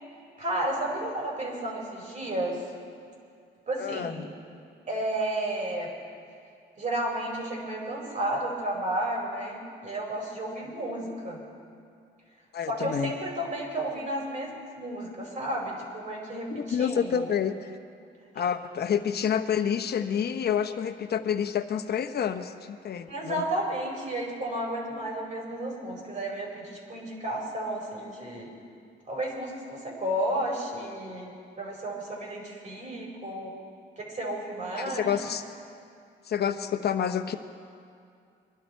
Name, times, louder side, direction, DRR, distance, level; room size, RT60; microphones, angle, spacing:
voice 1, 0.4-2.6 3.7-4.2 4.9-5.9 6.8-11.4 12.7-17.2 23.1-28.5 29.1-33.5 34.0-35.2, right 1 dB, 40° right, -1 dB, 5.1 m, -32 dB
voice 2, 3.8-4.3 12.5-13.1 16.5-17.5 18.3-23.4 34.8-35.4 36.3-37.4, left 8 dB, 55° left, 8 dB, 1.0 m, -28 dB
23.0 x 12.0 x 4.6 m, 2.4 s
cardioid pair, 90°, 20 cm